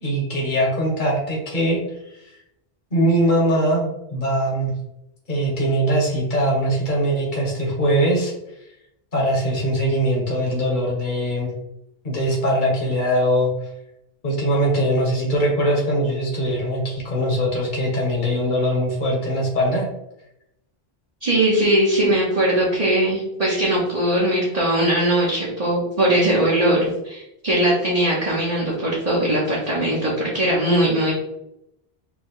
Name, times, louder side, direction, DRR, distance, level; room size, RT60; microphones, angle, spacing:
voice 1, 0.0-1.8 2.1-2.2 2.9-4.7 5.3-8.3 9.1-11.5 12.0-13.5 14.2-19.9, equal, 50° left, -3 dB, 1.5 m, -21 dB
voice 2, 21.2-26.8 27.0-31.1, right 1 dB, 40° right, -7 dB, 1.2 m, -20 dB
5.3 x 3.0 x 3.3 m, 0.84 s
omnidirectional pair, 1.0 m